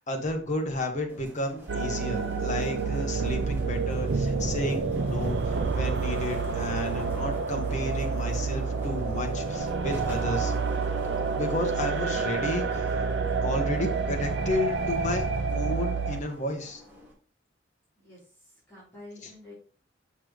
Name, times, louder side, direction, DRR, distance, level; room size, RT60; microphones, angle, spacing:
voice 1, 0.0-10.5 11.3-12.9 13.4-15.2 15.5-16.8 19.2-19.3, left 1 dB, 40° left, 2 dB, 1.4 m, -32 dB
sound 1, 1.1-17.1, equal, 10° right, 2.2 m, -46 dB
sound 2, 1.7-16.2, right 4 dB, 65° right, 0.6 m, -28 dB
voice 2, 18.0-19.5, left 2 dB, 10° left, -10 dB, 4.0 m, -49 dB
6.6 x 5.9 x 3.2 m, 0.40 s
head